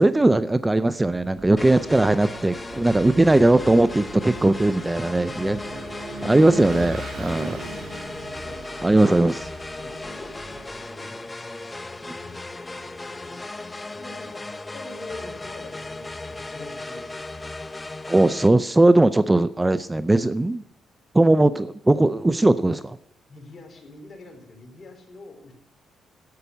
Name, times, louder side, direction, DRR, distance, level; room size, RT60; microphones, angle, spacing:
voice 1, 0.0-5.6 6.2-7.6 8.8-9.4 18.1-20.6 21.1-23.0, right 2 dB, 15° right, 14 dB, 0.5 m, -19 dB
Vehicle / Engine, 1.2-10.9, right 2 dB, 60° right, 3.5 m, -39 dB
sound 1, 1.6-18.5, left 2 dB, 20° left, 0.8 m, -36 dB
voice 2, 5.4-6.4 8.3-9.3 9.8-11.2 12.1-12.4 12.7-13.4 13.7-17.1 23.3-25.5, left 2 dB, 45° left, 4 dB, 4.1 m, -45 dB
11.5 x 8.2 x 7.8 m, 0.82 s
cardioid pair, 75°, 0 cm